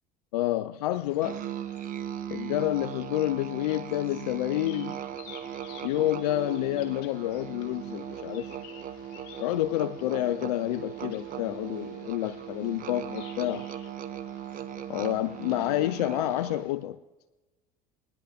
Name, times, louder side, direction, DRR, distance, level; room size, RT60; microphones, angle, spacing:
voice 1, 0.3-1.4 2.3-5.0 5.8-8.5 9.4-13.6 14.9-17.0, left 15 dB, 90° left, 0.4 m, -29 dB
sound 1, 0.9-16.7, left 8 dB, 70° left, 1.8 m, -53 dB
Musical instrument, 1.2-16.8, right 10 dB, 45° right, 0.9 m, -39 dB
21.5 x 10.5 x 3.5 m
supercardioid pair, 90°, 20 cm